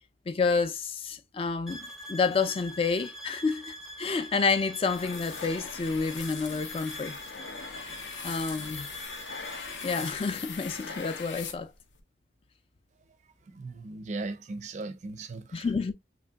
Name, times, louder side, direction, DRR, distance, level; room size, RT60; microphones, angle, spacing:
voice 1, 0.3-7.2 7.8-7.9 8.2-8.9 9.8-11.7 15.5-15.9, left 4 dB, 30° left, 0.3 m, -29 dB
sound 1, 1.7-10.2, equal, ahead, 0.6 m, -44 dB
sound 2, 4.9-12.0, left 5 dB, 85° left, 0.6 m, -40 dB
voice 2, 13.5-15.7, right 3 dB, 40° right, 0.4 m, -38 dB
3.1 x 2.6 x 2.2 m
head